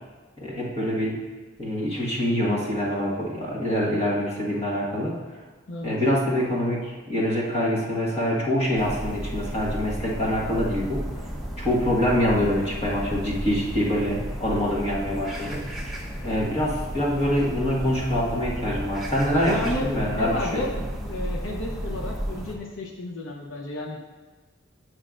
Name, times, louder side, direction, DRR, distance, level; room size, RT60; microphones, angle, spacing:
voice 1, 0.4-1.2 1.6-5.2 5.8-11.1 11.6-15.6 16.2-20.8, equal, 30° left, -4 dB, 1.5 m, -25 dB
sound 1, 8.8-22.6, equal, ahead, 0.8 m, -33 dB
voice 2, 19.5-19.9 20.2-24.0, left 2 dB, 80° left, 0 dB, 0.8 m, -32 dB
8.7 x 6.4 x 2.5 m, 1.4 s
head